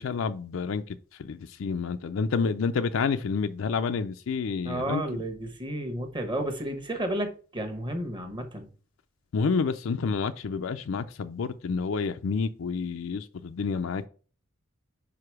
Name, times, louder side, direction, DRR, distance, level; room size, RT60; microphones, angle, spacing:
voice 1, 0.0-5.2 9.3-14.1, left 5 dB, 70° left, 0.4 m, -29 dB
voice 2, 4.6-8.7, right 1 dB, 20° right, 1.1 m, -32 dB
5.2 x 4.8 x 4.7 m
head